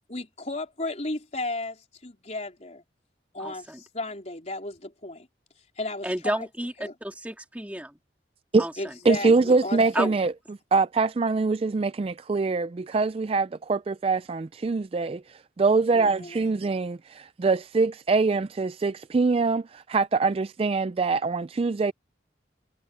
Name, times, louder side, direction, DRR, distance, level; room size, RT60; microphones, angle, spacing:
voice 1, 0.1-2.8 3.3-5.3 5.8-6.5 6.8-6.9 8.8-10.3 15.9-16.4, left 2 dB, 35° left, 4.0 m, -34 dB
voice 2, 3.4-3.8 6.0-7.9 8.6-8.9 9.9-10.1, right 1 dB, 10° right, 1.9 m, -31 dB
voice 3, 9.1-10.3 10.7-21.9, right 4 dB, 30° right, 0.3 m, -24 dB
head